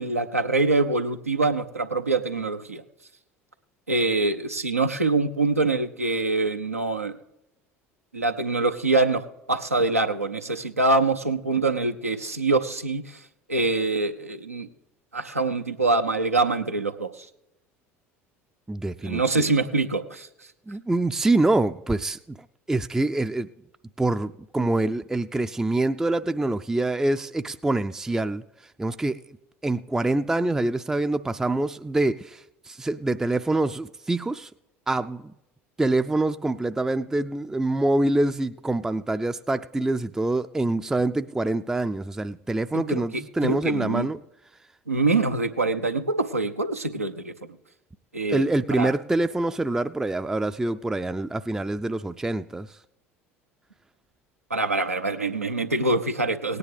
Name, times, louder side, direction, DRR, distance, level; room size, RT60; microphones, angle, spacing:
voice 1, 0.0-2.8 3.9-7.2 8.1-13.2 13.5-14.7 15.1-17.3 19.0-20.3 42.7-44.1 44.9-47.3 48.1-48.9 54.5-56.6, right 3 dB, 90° right, 0.6 m, -25 dB
voice 2, 18.7-19.5 20.7-22.4 22.7-23.5 24.0-28.4 28.8-29.2 29.6-34.5 34.9-35.3 35.8-44.2 48.3-52.8, right 2 dB, 5° right, 0.4 m, -25 dB
18.0 x 9.8 x 3.4 m
figure-of-eight pair, 70°, 8 cm